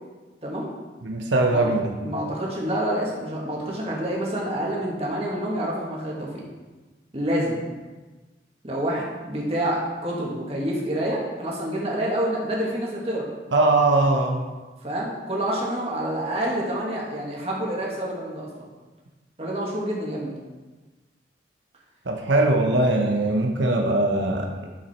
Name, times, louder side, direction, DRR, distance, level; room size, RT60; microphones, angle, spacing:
voice 1, 1.0-1.9 13.5-14.4 22.1-24.7, right 2 dB, 85° right, 2 dB, 1.0 m, -21 dB
voice 2, 2.0-6.3 7.1-7.6 8.6-13.3 14.8-18.7 19.4-20.4, right 1 dB, 35° right, -4 dB, 2.1 m, -27 dB
9.7 x 7.0 x 4.4 m, 1.3 s
head